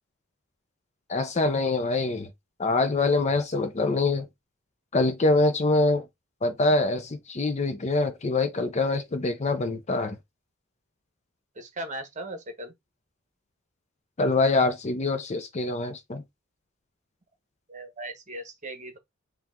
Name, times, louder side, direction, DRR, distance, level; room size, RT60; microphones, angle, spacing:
voice 1, 1.1-2.3 2.6-4.3 4.9-6.1 6.4-10.2 14.2-16.2, left 3 dB, 35° left, 0.6 m, -24 dB
voice 2, 11.6-12.7 17.7-19.0, right 1 dB, 35° right, 1.1 m, -38 dB
4.4 x 2.4 x 3.7 m
head